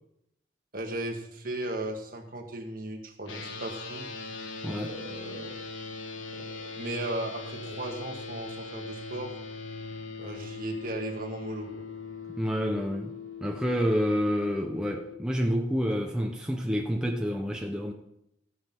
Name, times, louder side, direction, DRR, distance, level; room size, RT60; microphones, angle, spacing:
voice 1, 0.7-4.1 4.8-5.6 6.3-9.3 10.2-11.9, right 1 dB, 45° right, 1.7 m, -36 dB
sound 1, 3.3-15.1, left 4 dB, 85° left, 1.3 m, -40 dB
voice 2, 4.6-5.0 12.4-13.1 13.4-17.9, equal, 5° right, 0.7 m, -28 dB
15.0 x 5.5 x 5.9 m
head